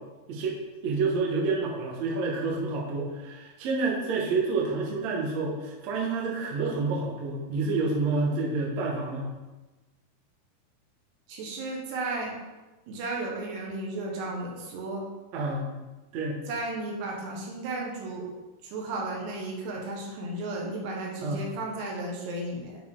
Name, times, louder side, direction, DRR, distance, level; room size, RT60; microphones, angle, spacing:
voice 1, 0.8-9.3 15.3-15.7 16.1-16.4 21.2-21.4, right 3 dB, 55° right, -3 dB, 2.3 m, -28 dB
voice 2, 11.3-12.3 12.9-15.0 16.5-18.3 18.6-22.8, right 2 dB, 85° right, -1 dB, 3.4 m, -34 dB
11.5 x 4.3 x 3.8 m, 1.1 s
omnidirectional pair, 4.6 m